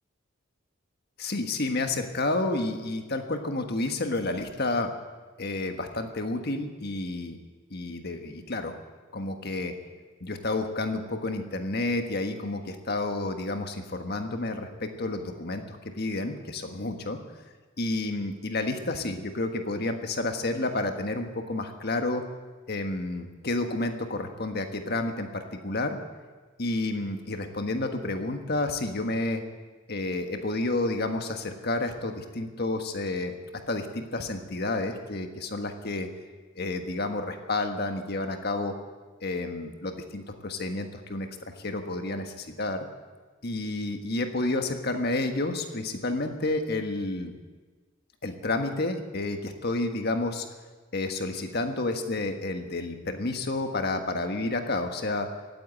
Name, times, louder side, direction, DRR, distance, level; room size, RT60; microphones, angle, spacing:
voice 1, 1.2-4.9 5.4-7.4 7.7-8.7 9.1-9.7 10.2-17.2 17.8-22.2 22.7-26.0 26.6-29.4 29.9-33.3 33.7-36.1 36.5-38.7 39.2-42.8 43.4-47.3 48.2-50.5 50.9-55.3, left 2 dB, 50° left, 5 dB, 1.5 m, -30 dB
16.5 x 9.4 x 9.0 m, 1.4 s
head